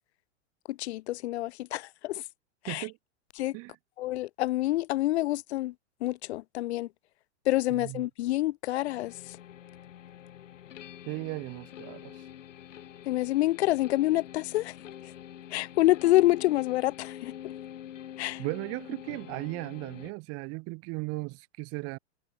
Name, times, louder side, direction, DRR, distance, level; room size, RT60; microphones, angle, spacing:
voice 1, 0.7-2.2 2.7-2.8 3.4-3.5 4.0-5.7 6.0-6.9 7.5-9.1 13.1-14.7 15.5-17.3 18.2-18.4, left 16 dB, 60° left, 1.3 m, -27 dB
voice 2, 2.7-3.0 3.5-3.8 7.7-8.1 11.0-12.2 18.4-22.0, right 28 dB, 40° right, 6.7 m, -36 dB
sound 1, 8.8-20.1, left 11 dB, 85° left, 3.9 m, -46 dB
supercardioid pair, 145°, 36 cm